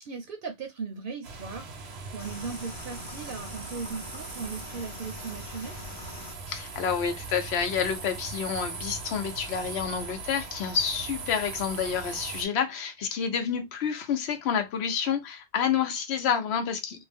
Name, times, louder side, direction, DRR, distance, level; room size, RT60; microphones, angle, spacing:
voice 1, 0.0-5.8, right 5 dB, 65° right, 0.7 m, -38 dB
sound 1, 1.2-12.5, right 4 dB, 85° right, 1.0 m, -40 dB
sound 2, 2.2-6.3, left 3 dB, 40° left, 0.4 m, -44 dB
voice 2, 6.5-17.0, left 7 dB, 85° left, 0.9 m, -29 dB
2.5 x 2.0 x 3.3 m
omnidirectional pair, 1.1 m